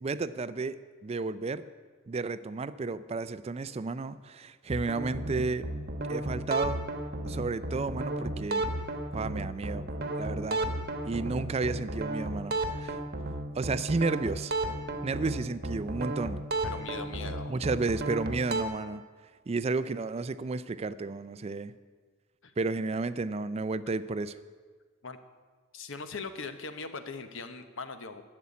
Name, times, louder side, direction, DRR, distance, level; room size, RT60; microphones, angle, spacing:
voice 1, 0.0-1.6 2.1-5.7 6.1-6.8 7.3-8.6 9.1-9.9 10.2-10.7 11.0-13.0 13.5-14.5 15.0-16.4 17.5-19.0 19.5-21.7 22.6-24.4, right 3 dB, 30° right, 15 dB, 0.4 m, -32 dB
sound 1, 4.7-18.6, right 1 dB, 50° right, 1.1 m, -34 dB
voice 2, 16.6-17.6 22.4-22.5 25.0-25.2 25.7-28.2, left 4 dB, 65° left, 9 dB, 1.0 m, -40 dB
12.5 x 7.1 x 9.4 m, 1.5 s
head